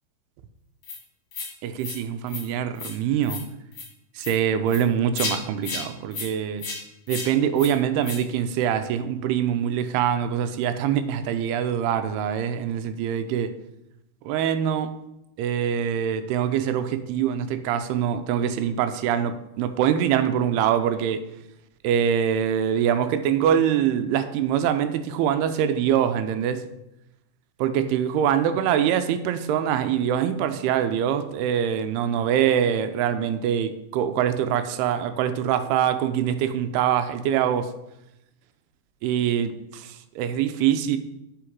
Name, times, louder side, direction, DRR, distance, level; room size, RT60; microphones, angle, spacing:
sound 1, 0.8-1.0 1.3-1.5 1.8-2.0 2.3-2.4 2.8-3.0 3.2-3.4 3.7-3.9 4.2-4.4 4.7-4.8 5.2-5.4 5.6-5.8 6.1-6.3 6.6-6.8 7.1-7.3 7.6-7.7 8.0-8.2, left 4 dB, 50° left, 1.9 m, -32 dB
voice 1, 1.6-3.4 4.2-6.6 7.1-13.6 14.2-14.9 15.4-21.2 21.8-26.6 27.6-37.7 39.0-41.0, right 9 dB, 90° right, 10 dB, 2.6 m, -24 dB
8.6 x 5.2 x 4.6 m, 0.88 s
omnidirectional pair, 4.5 m